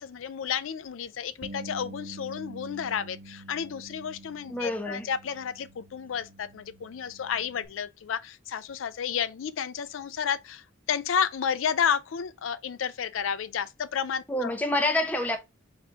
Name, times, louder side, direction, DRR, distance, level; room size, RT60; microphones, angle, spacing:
voice 1, 0.0-14.5, left 7 dB, 80° left, 0.4 m, -31 dB
Bass guitar, 1.4-7.7, right 1 dB, 50° right, 0.7 m, -46 dB
voice 2, 4.5-5.1 14.3-15.4, left 1 dB, 10° left, 0.7 m, -27 dB
4.2 x 2.6 x 4.5 m
head